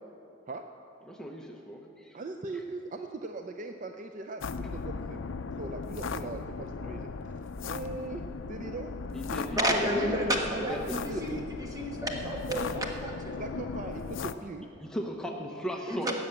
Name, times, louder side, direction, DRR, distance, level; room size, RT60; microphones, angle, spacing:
voice 1, 1.1-2.2 9.1-9.8 10.7-11.0 14.8-16.2, equal, 5° left, 1 dB, 0.8 m, -37 dB
voice 2, 2.1-5.2 5.6-7.3 7.7-8.9 9.9-10.2 10.5-11.2 13.4-14.7, right 3 dB, 40° right, 6 dB, 0.5 m, -40 dB
sound 1, 4.4-14.3, left 4 dB, 70° left, 0.5 m, -38 dB
voice 3, 9.5-13.4 15.9-16.2, equal, 20° right, 1 dB, 1.4 m, -31 dB
16.5 x 6.4 x 8.7 m, 2.8 s
head